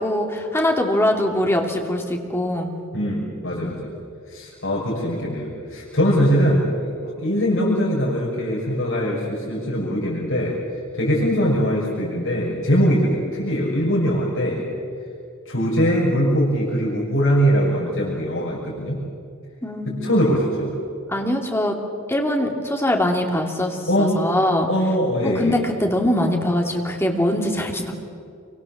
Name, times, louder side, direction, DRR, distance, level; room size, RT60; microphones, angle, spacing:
voice 1, 0.0-2.7 19.6-20.2 21.1-21.8 22.1-24.7 25.3-27.9, left 1 dB, 10° left, 1 dB, 2.8 m, -22 dB
voice 2, 2.9-3.9 4.3-10.6 10.9-14.6 15.4-19.0 19.9-20.7 23.9-24.2 24.7-25.6, equal, 65° left, -6 dB, 6.1 m, -21 dB
28.0 x 24.5 x 7.4 m, 2.4 s
head